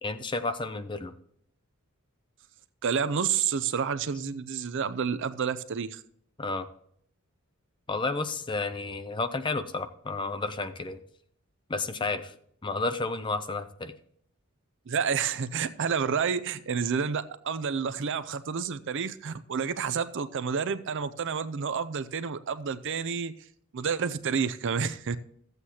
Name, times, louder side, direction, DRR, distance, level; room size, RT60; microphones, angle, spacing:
voice 1, 0.0-1.1 6.4-6.7 7.9-11.0 11.7-12.4 12.6-13.9, left 3 dB, 20° left, 10 dB, 0.5 m, -31 dB
voice 2, 2.8-6.0 14.9-23.3 23.7-25.2, right 6 dB, 60° right, 12 dB, 0.5 m, -29 dB
14.0 x 8.1 x 2.9 m, 0.66 s
head